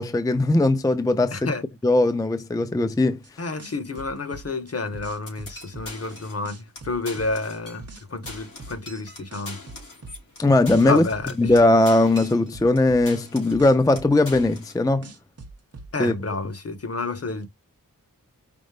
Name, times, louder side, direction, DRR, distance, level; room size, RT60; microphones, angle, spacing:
voice 1, 0.0-1.5 1.8-3.2 10.4-11.0 11.4-15.1 16.0-16.1, left 2 dB, 10° left, 0.4 m, -19 dB
voice 2, 1.3-1.6 3.4-9.6 10.8-11.6 15.9-17.5, left 3 dB, 45° left, 1.0 m, -30 dB
sound 1, 3.2-3.3 3.6-6.2 6.4-9.0 9.3-11.9 12.2-14.7 15.0-15.9, right 3 dB, 45° right, 0.9 m, -42 dB
sound 2, 5.3-6.4 6.7-6.8 7.0-8.0 8.2-12.8 13.1-13.6 13.9-14.8, left 2 dB, 70° left, 3.3 m, -42 dB
5.1 x 2.1 x 3.2 m
wide cardioid pair, 95°, 34 cm